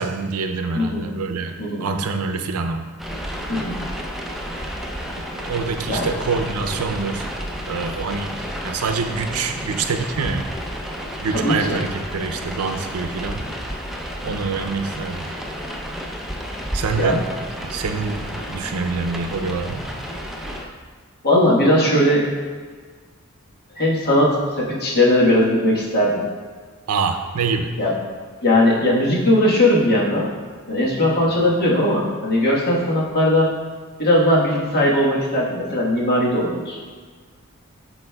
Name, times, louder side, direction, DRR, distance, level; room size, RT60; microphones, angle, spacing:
voice 1, 0.0-2.9 5.3-7.3 7.7-10.5 11.2-13.5 14.2-15.3 16.7-17.3 17.6-19.9 26.9-27.8 31.3-31.4, right 4 dB, 90° right, 6 dB, 0.5 m, -26 dB
voice 2, 0.7-1.1 1.6-1.9 3.5-3.8 5.9-6.1 11.3-11.8 17.0-17.1 21.2-22.3 23.7-26.3 27.8-27.9 28.4-30.3 30.7-33.5 34.0-36.8, left 1 dB, 45° left, -4 dB, 1.4 m, -18 dB
sound 1, 3.0-20.7, equal, ahead, 0.5 m, -31 dB
11.0 x 4.1 x 2.3 m, 1.5 s
head